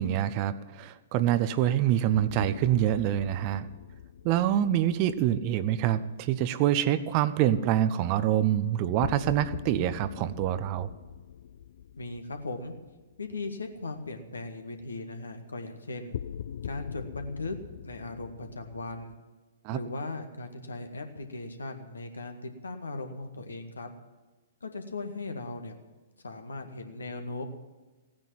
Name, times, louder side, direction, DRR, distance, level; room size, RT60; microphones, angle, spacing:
voice 1, 0.0-3.7 4.2-10.9 19.6-19.8, right 11 dB, 35° right, 14 dB, 0.8 m, -26 dB
sound 1, 2.1-6.3 9.0-13.4 13.7-13.8 16.1-19.2, left 9 dB, 60° left, 0.5 m, -42 dB
voice 2, 12.0-12.7 13.2-16.2 16.6-17.6 17.8-19.1 19.7-23.9 24.6-25.8 26.2-27.4, left 2 dB, 75° left, 6 dB, 1.9 m, -38 dB
16.5 x 9.6 x 7.6 m, 1.2 s
figure-of-eight pair, 115°, 0 cm